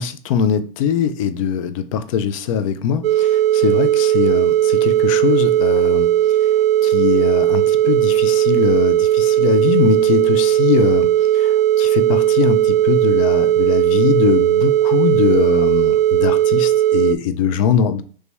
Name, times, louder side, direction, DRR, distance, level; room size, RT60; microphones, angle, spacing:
voice 1, 0.0-6.1 6.4-6.5 6.8-18.0, left 8 dB, 35° left, 0.4 m, -21 dB
sound 1, 3.0-17.2, right 12 dB, 85° right, 0.5 m, -16 dB
3.1 x 2.9 x 3.3 m
hypercardioid pair, 145°, 29 cm